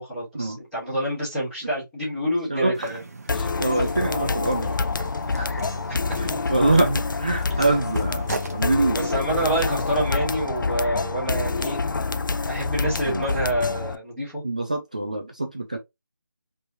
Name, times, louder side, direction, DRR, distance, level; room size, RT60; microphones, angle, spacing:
voice 1, 0.0-3.0 5.3-5.6 5.9-6.0 6.3-6.4 7.5-7.6 8.9-11.8 12.5-14.4, right 1 dB, 5° left, 1.8 m, -27 dB
voice 2, 2.5-3.0 3.3-4.8 5.4-5.5 6.2-9.3 13.1-13.2 14.4-15.8, right 2 dB, 20° right, 0.4 m, -25 dB
sound 1, 2.7-8.7, right 3 dB, 50° right, 0.9 m, -39 dB
sound 2, 3.3-14.0, left 4 dB, 75° left, 0.5 m, -27 dB
4.5 x 3.3 x 2.8 m
figure-of-eight pair, 175°, 11 cm